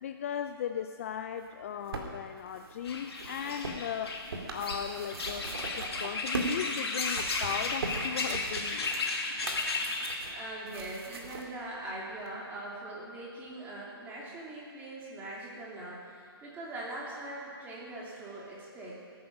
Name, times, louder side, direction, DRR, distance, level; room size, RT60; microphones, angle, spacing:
voice 1, 0.0-4.2 4.5-5.5 5.8-8.9, left 9 dB, 35° left, 8 dB, 0.4 m, -37 dB
sound 1, 1.4-6.6 6.9-11.5 12.3-12.4, right 3 dB, 65° right, 2.4 m, -40 dB
sound 2, 2.8-10.1, left 3 dB, 75° left, 2.2 m, -34 dB
voice 2, 10.2-19.0, right 1 dB, 15° right, -5 dB, 2.8 m, -42 dB
17.0 x 9.5 x 6.0 m, 2.2 s
hypercardioid pair, 160°, 13 cm